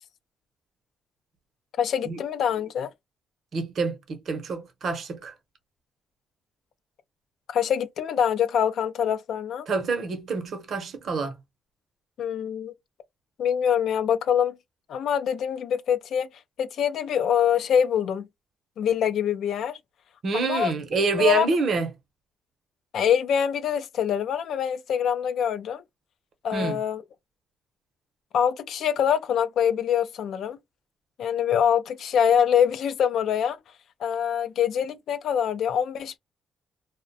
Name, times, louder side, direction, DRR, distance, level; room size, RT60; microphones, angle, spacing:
voice 1, 1.8-2.9 7.5-9.7 12.2-12.7 13.4-14.6 14.9-16.3 16.6-18.3 18.8-19.8 20.3-20.7 21.2-21.5 22.9-25.8 26.4-27.0 28.3-30.6 31.2-33.6 34.0-36.2, left 8 dB, 70° left, 0.3 m, -24 dB
voice 2, 3.5-5.3 9.7-11.3 20.2-21.9 26.5-26.8, right 4 dB, 50° right, 0.7 m, -27 dB
2.3 x 2.1 x 2.6 m
cardioid pair, 125°, 0 cm